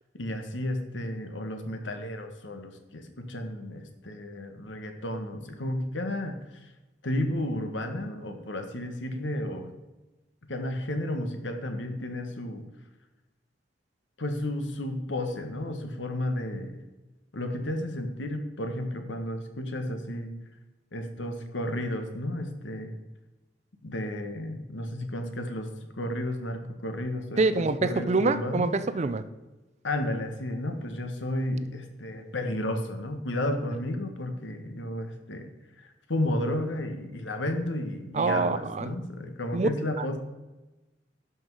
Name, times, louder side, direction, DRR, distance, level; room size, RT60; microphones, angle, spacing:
voice 1, 0.1-6.7 7.0-9.7 10.5-12.6 14.2-16.8 17.3-20.3 20.9-22.9 23.8-25.7 26.0-28.7 29.8-35.5 35.8-40.2, left 1 dB, 75° left, 6 dB, 1.4 m, -32 dB
voice 2, 27.4-29.2 38.1-38.9 39.5-39.7 40.0-40.1, right 3 dB, 35° right, 13 dB, 0.5 m, -25 dB
11.5 x 5.9 x 4.7 m, 1.1 s
head